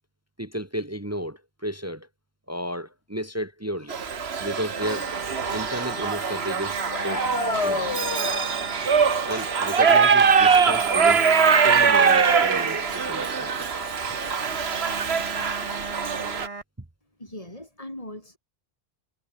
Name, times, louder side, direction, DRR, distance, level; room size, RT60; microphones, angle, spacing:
voice 1, 0.4-2.1 2.5-4.0 4.4-5.1 5.5-7.3 7.6-8.0 9.2-13.8 14.1-14.2, equal, 15° right, 1.1 m, -33 dB
Shout / Livestock farm animals working animals, 3.9-16.5, right 6 dB, 65° right, 1.6 m, -22 dB
sound 1, 4.8-16.6, right 3 dB, 30° right, 1.4 m, -37 dB
sound 2, 4.9-5.0 5.5-5.7 6.0-6.1 6.9-8.5, left 5 dB, 75° left, 2.0 m, -29 dB
voice 2, 17.2-18.4, left 1 dB, 30° left, 6.7 m, -39 dB
omnidirectional pair, 1.1 m